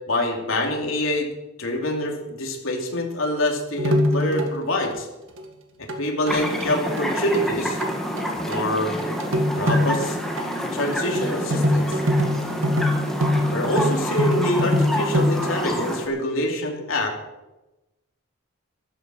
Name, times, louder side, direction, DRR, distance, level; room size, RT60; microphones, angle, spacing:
voice 1, 0.1-1.3 1.6-5.1 5.8-7.8 8.4-9.0 9.6-10.2 10.6-12.0 13.5-17.1, left 1 dB, 70° left, 1 dB, 2.8 m, -25 dB
sound 1, 3.8-5.0 5.4-5.5 5.9-6.0 6.3-6.6 7.0-7.1 7.3-7.4 7.7-8.3 8.5-8.6 9.0-10.1 10.4-10.5 10.8-15.6, left 1 dB, 60° right, 1.9 m, -23 dB
sound 2, 6.3-16.1, equal, ahead, 1.7 m, -28 dB
14.0 x 12.0 x 6.2 m, 1.0 s
head